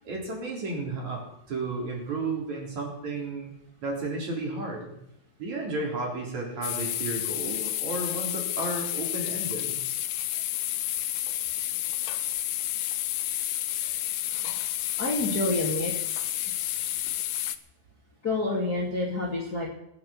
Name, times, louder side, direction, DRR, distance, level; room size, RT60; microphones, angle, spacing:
voice 1, 0.0-3.5 3.8-5.0 5.4-9.8, right 2 dB, 50° right, -1 dB, 4.8 m, -33 dB
sound 1, 6.6-17.6, left 14 dB, 75° left, 2.2 m, -30 dB
voice 2, 15.0-15.9 18.2-19.7, left 2 dB, 25° left, -3 dB, 2.6 m, -28 dB
19.0 x 9.2 x 7.3 m, 0.79 s
omnidirectional pair, 4.6 m